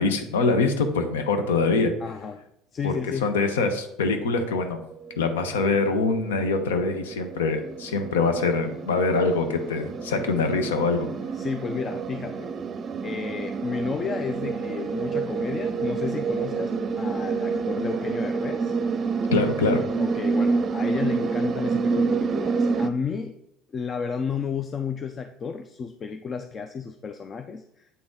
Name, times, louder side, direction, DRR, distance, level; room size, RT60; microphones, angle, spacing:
voice 1, 0.0-1.9 2.8-2.9 3.2-4.8 5.2-11.1 19.3-19.8, left 3 dB, 90° left, 7 dB, 0.9 m, -24 dB
voice 2, 2.0-2.4 2.7-3.4 11.3-12.5 13.0-18.7 20.0-23.4 23.7-27.9, left 6 dB, 35° left, 8 dB, 0.4 m, -32 dB
sound 1, 4.8-22.9, right 4 dB, 40° right, 0.5 m, -28 dB
8.2 x 3.9 x 3.7 m, 0.77 s
hypercardioid pair, 80°, 0 cm